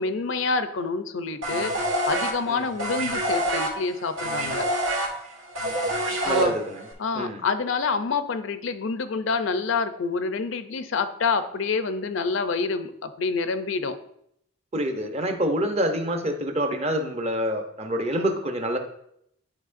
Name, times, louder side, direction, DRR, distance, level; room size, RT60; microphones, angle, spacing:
voice 1, 0.0-1.7 2.1-4.7 6.2-6.6 7.0-14.0, left 4 dB, 70° left, 11 dB, 0.5 m, -27 dB
sound 1, 1.4-6.9, right 1 dB, 80° right, 1.7 m, -26 dB
voice 2, 6.2-6.8 7.1-7.4 14.7-18.8, equal, 35° right, 5 dB, 0.7 m, -26 dB
10.5 x 4.4 x 2.5 m, 0.74 s
head